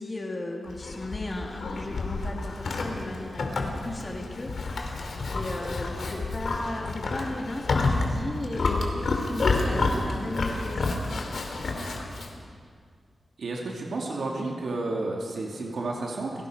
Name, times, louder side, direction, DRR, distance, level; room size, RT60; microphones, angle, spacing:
voice 1, 0.0-3.5 3.8-4.5 5.3-11.0, left 2 dB, 30° left, -1 dB, 2.6 m, -35 dB
Livestock farm animals working animals, 0.7-12.3, left 3 dB, 70° left, 2.8 m, -29 dB
voice 2, 13.4-16.3, right 2 dB, 80° right, -1 dB, 2.7 m, -31 dB
29.5 x 17.5 x 5.1 m, 2.1 s
wide cardioid pair, 130°, 0 cm